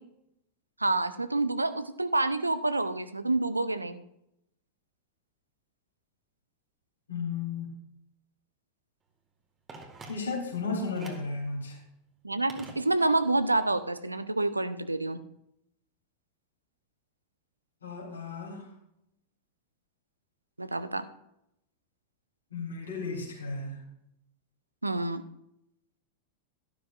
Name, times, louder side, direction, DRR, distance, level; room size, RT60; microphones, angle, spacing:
voice 1, 0.8-4.0 12.2-15.2 20.6-21.1 24.8-25.2, right 2 dB, 85° right, 13 dB, 0.6 m, -28 dB
voice 2, 7.1-7.7 10.1-11.8 17.8-18.6 22.5-23.8, left 4 dB, 75° left, 0 dB, 3.2 m, -34 dB
Telephone, 9.7-10.6 10.9-11.4 12.5-13.3 13.6-13.7, right 3 dB, 20° right, 1.7 m, -48 dB
12.0 x 12.0 x 2.5 m, 0.80 s
figure-of-eight pair, 90°, 0 cm